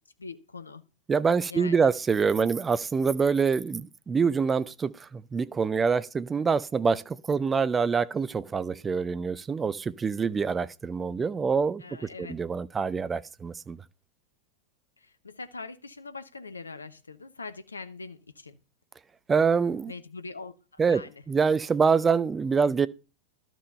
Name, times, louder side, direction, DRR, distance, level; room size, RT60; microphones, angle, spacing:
voice 1, 0.2-0.8 1.5-1.9 11.8-12.3 15.0-18.6 19.9-21.2, left 4 dB, 75° left, 0.8 m, -42 dB
voice 2, 1.1-11.8 12.2-13.8 19.3-19.9 20.8-21.0 21.3-22.9, right 5 dB, 15° right, 0.6 m, -25 dB
12.0 x 6.2 x 6.6 m
figure-of-eight pair, 90°, 0 cm